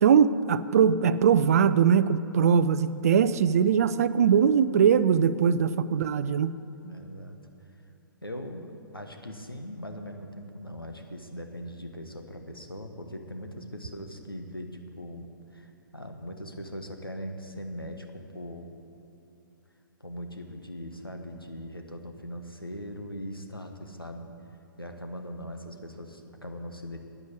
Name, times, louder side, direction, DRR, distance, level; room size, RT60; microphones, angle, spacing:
voice 1, 0.0-6.5, right 7 dB, 45° right, 14 dB, 0.5 m, -21 dB
voice 2, 6.8-7.4 8.2-18.7 20.0-24.3 24.8-27.0, equal, 90° left, 4 dB, 1.3 m, -40 dB
10.5 x 9.8 x 8.4 m, 2.7 s
figure-of-eight pair, 120°, 12 cm